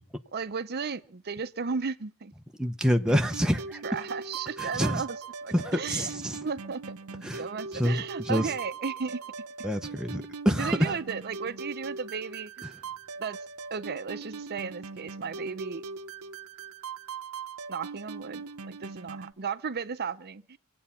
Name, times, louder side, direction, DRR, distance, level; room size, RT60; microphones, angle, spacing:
voice 1, 0.3-2.3 3.8-5.2 5.4-6.1 6.4-6.9 7.4-9.2 10.5-12.7 13.2-13.4 13.7-15.8 17.7-20.6, right 5 dB, 45° right, 0.7 m, -34 dB
voice 2, 2.6-3.8 4.6-5.0 5.5-6.5 7.2-7.4 7.7-8.5 9.6-10.9, equal, 5° right, 0.7 m, -27 dB
sound 1, 3.0-19.3, right 4 dB, 80° right, 0.8 m, -41 dB
25.0 x 8.6 x 5.7 m
head